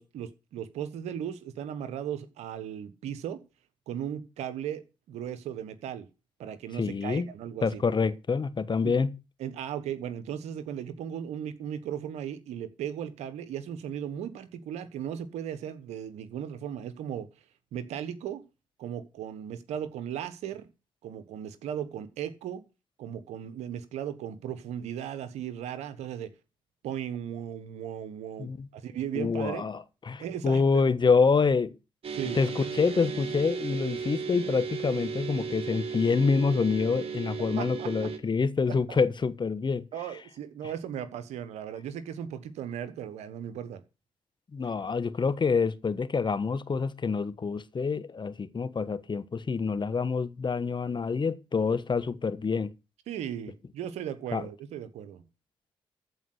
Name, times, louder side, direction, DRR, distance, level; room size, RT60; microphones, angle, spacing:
voice 1, 0.0-3.4 3.9-6.1 6.4-7.8 9.4-17.3 17.7-18.4 18.8-20.7 21.0-22.6 23.0-26.3 26.8-29.7 30.2-30.6 32.1-32.4 37.6-37.9 38.9-39.0 39.9-43.8 53.1-55.2, right 9 dB, 80° right, 1.2 m, -36 dB
voice 2, 6.7-7.3 7.6-9.1 28.4-28.7 29.1-31.7 32.3-39.8 44.5-52.7 54.3-54.5, left 5 dB, 45° left, 1.2 m, -27 dB
sound 1, 32.0-38.2, right 6 dB, 55° right, 2.1 m, -35 dB
14.0 x 4.9 x 7.9 m
hypercardioid pair, 45°, 11 cm